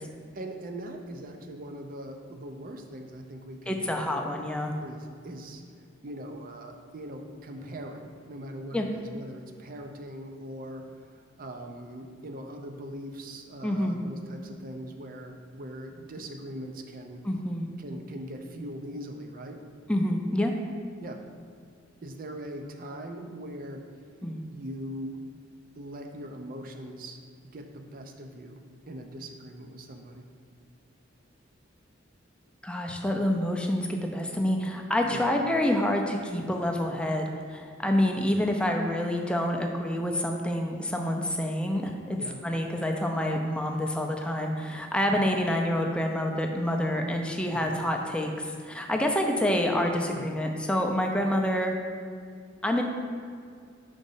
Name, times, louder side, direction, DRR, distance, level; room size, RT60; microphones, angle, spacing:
voice 1, 0.0-4.1 4.8-5.6 6.0-10.9 11.1-17.2 17.8-19.6 21.0-21.2 22.0-23.8 24.5-25.2 25.8-27.2 27.4-28.6 28.9-30.2 35.1-35.3 42.2-42.4 47.5-47.8 50.0-50.3, right 1 dB, 45° right, 4 dB, 0.5 m, -41 dB
voice 2, 3.7-4.7 8.7-8.8 13.6-14.0 17.2-17.7 19.9-20.5 24.2-24.4 32.6-51.7 52.6-52.8, left 1 dB, 5° left, 2 dB, 0.5 m, -27 dB
5.2 x 4.0 x 5.5 m, 2.2 s
head